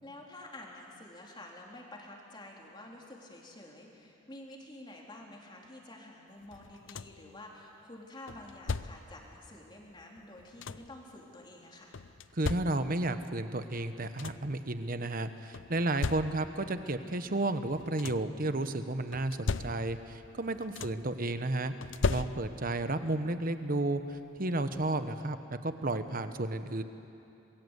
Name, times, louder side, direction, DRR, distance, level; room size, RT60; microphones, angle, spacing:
voice 1, 0.0-11.9, left 1 dB, 25° left, -1 dB, 3.4 m, -49 dB
sound 1, 6.5-7.3 8.3-9.2 10.2-11.0 11.9-13.1 13.7-13.8 14.0-14.6 15.5-16.7 17.6-18.4 19.1-20.2 20.4-21.2 21.8-22.8 24.1-24.2 24.7-24.9, left 4 dB, 65° left, 0.6 m, -37 dB
voice 2, 12.3-21.7 22.1-26.8, right 2 dB, 45° right, 10 dB, 1.1 m, -32 dB
27.0 x 21.5 x 8.2 m, 2.8 s
head